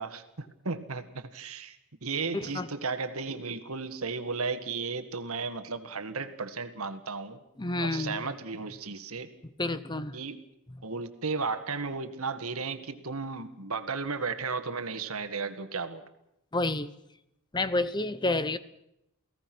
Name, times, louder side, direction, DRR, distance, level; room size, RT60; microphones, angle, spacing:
voice 1, 0.0-7.4 7.8-9.3 10.1-10.4 10.8-16.0, right 4 dB, 70° right, 9 dB, 1.8 m, -34 dB
voice 2, 2.3-2.7 7.6-8.2 9.6-10.1 16.5-16.9 17.5-18.6, left 2 dB, 20° left, 14 dB, 0.7 m, -29 dB
29.0 x 17.5 x 6.2 m, 0.83 s
head